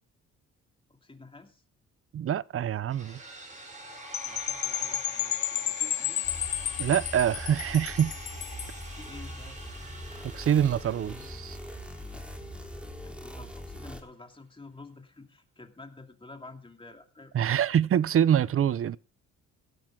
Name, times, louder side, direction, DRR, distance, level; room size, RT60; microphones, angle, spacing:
voice 1, 0.9-1.6 4.2-6.2 8.9-9.6 12.9-17.4, left 3 dB, 15° left, 2.7 m, -49 dB
voice 2, 2.1-3.2 6.8-8.1 10.3-11.6 17.3-19.0, right 9 dB, 50° right, 0.6 m, -25 dB
sound 1, 2.9-12.9, right 1 dB, 25° right, 6.6 m, -45 dB
Percussion / Wind chime, 4.1-8.8, left 12 dB, 65° left, 0.9 m, -32 dB
sound 2, 6.2-14.0, equal, 5° right, 3.6 m, -42 dB
17.0 x 12.0 x 3.8 m
cardioid pair, 90°, 30 cm